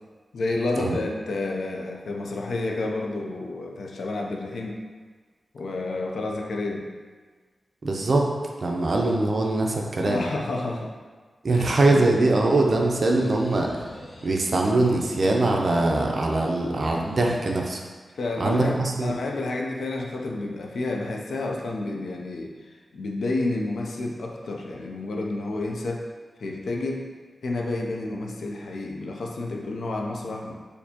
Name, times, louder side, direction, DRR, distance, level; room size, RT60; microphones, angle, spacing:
voice 1, 0.3-4.8 5.5-6.9 10.0-10.9 11.5-11.6 12.0-12.1 18.2-22.5 22.9-26.1 26.4-27.1 27.4-30.5, left 2 dB, 80° left, 0 dB, 0.4 m, -30 dB
voice 2, 7.8-8.3 8.6-10.2 11.4-13.7 14.2-17.8 18.4-19.2, right 2 dB, 50° right, 0 dB, 0.5 m, -22 dB
sound 1, 11.6-17.7, left 1 dB, 35° left, 0.7 m, -41 dB
4.2 x 2.6 x 2.8 m, 1.5 s
wide cardioid pair, 115°, 0 cm